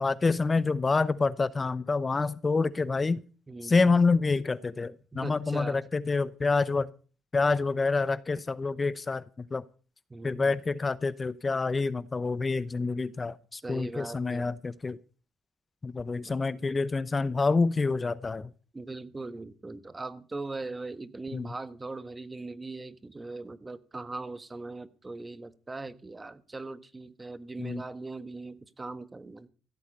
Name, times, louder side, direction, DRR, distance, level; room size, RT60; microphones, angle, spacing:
voice 1, 0.0-3.2 3.6-6.9 7.3-9.6 10.2-15.0 15.8-18.5 21.3-21.5 27.6-27.8, left 4 dB, 30° left, 0.8 m, -27 dB
voice 2, 3.5-4.0 5.1-5.8 10.1-10.6 13.5-14.5 16.2-16.3 18.7-29.5, right 3 dB, 25° right, 1.4 m, -40 dB
16.0 x 13.5 x 5.4 m
cardioid pair, 85°, 0 cm